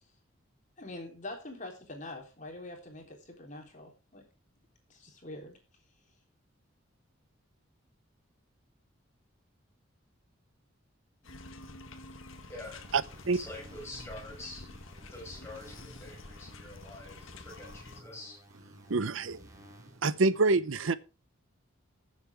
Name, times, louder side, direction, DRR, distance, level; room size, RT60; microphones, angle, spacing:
voice 1, 0.8-4.2 4.9-5.5, left 2 dB, 35° left, 3.4 m, -44 dB
sound 1, 11.2-18.0, left 2 dB, 75° left, 1.7 m, -48 dB
voice 2, 11.6-13.0 13.3-14.7 15.1-18.4, left 2 dB, 10° left, 5.7 m, -47 dB
sound 2, 12.7-20.1, equal, 15° right, 2.3 m, -55 dB
voice 3, 18.9-19.4 20.0-21.0, right 3 dB, 75° right, 0.7 m, -26 dB
20.0 x 7.6 x 3.4 m
head